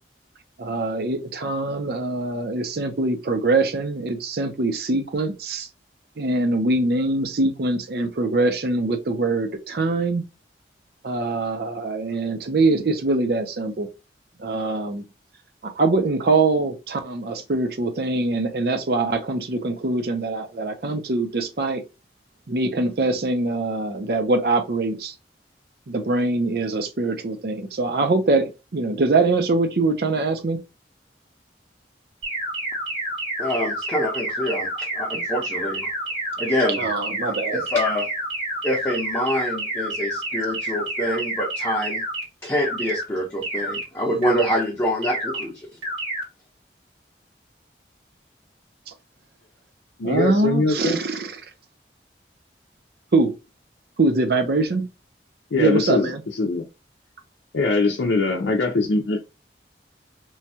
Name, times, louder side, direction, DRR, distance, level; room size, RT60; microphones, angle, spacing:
voice 1, 0.6-5.7 6.2-10.2 11.0-13.9 14.4-15.0 15.6-21.8 22.5-25.1 25.9-30.6 36.8-37.6 50.0-51.4 53.1-53.3 54.0-54.9 55.6-56.2, right 3 dB, 60° right, 0.5 m, -23 dB
sound 1, 32.2-42.2 42.6-43.0 43.4-43.8 44.2-44.6 45.0-45.4 45.8-46.2, right 1 dB, 85° right, 1.7 m, -29 dB
voice 2, 33.4-35.9 36.4-36.8 37.2-38.1 38.6-42.0 42.4-45.7, equal, 15° left, 0.6 m, -26 dB
voice 3, 50.0-51.0 55.5-56.7 57.5-59.2, left 3 dB, 80° left, 0.5 m, -22 dB
3.1 x 2.2 x 2.7 m
head